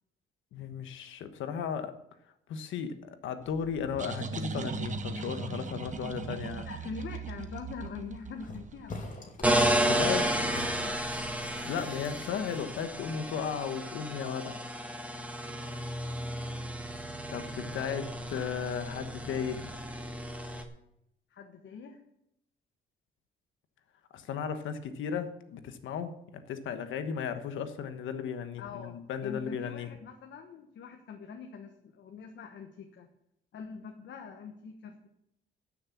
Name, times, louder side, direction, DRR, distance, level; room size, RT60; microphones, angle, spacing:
voice 1, 0.5-2.0 2.5-6.7 9.8-10.2 11.6-14.6 17.3-19.7 24.1-29.9, left 7 dB, 80° left, 9 dB, 1.3 m, -35 dB
sound 1, 3.5-9.0, right 5 dB, 40° right, 1.2 m, -39 dB
voice 2, 6.6-9.6 9.9-11.0 16.0-16.2 17.3-17.4 21.3-22.0 28.6-29.0 29.2-33.1 33.5-35.1, left 5 dB, 65° left, 4 dB, 1.3 m, -44 dB
sound 2, 8.4-8.6 8.9-9.5 9.8-13.2, left 2 dB, 40° left, 2.5 m, -45 dB
sound 3, 9.4-20.6, right 1 dB, 5° right, 1.6 m, -32 dB
13.0 x 6.6 x 7.3 m, 0.80 s
cardioid pair, 90°, 20 cm